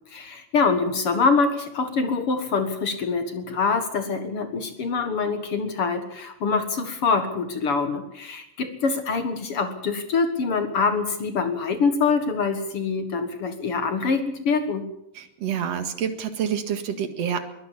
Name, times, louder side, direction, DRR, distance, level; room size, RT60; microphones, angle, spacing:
voice 1, 0.1-14.8, left 4 dB, 50° left, 8 dB, 2.1 m, -25 dB
voice 2, 15.1-17.4, right 8 dB, 50° right, 8 dB, 2.6 m, -28 dB
22.5 x 16.5 x 7.3 m, 0.79 s
omnidirectional pair, 4.1 m